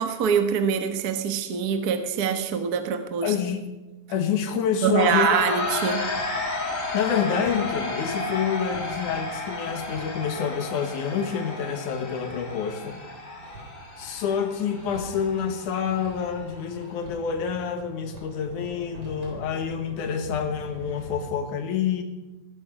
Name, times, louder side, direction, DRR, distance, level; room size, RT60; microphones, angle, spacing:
voice 1, 0.0-3.3 4.8-6.0, right 7 dB, 65° right, 7 dB, 0.9 m, -24 dB
voice 2, 3.2-3.6 4.1-5.3 6.1-6.2 6.9-13.0 14.0-22.0, left 7 dB, 75° left, 7 dB, 2.8 m, -27 dB
sound 1, 5.0-16.9, left 3 dB, 25° left, 2.3 m, -32 dB
Hammer, 5.5-21.2, right 3 dB, 50° right, 4.4 m, -46 dB
19.0 x 12.0 x 5.1 m, 1.1 s
omnidirectional pair, 3.7 m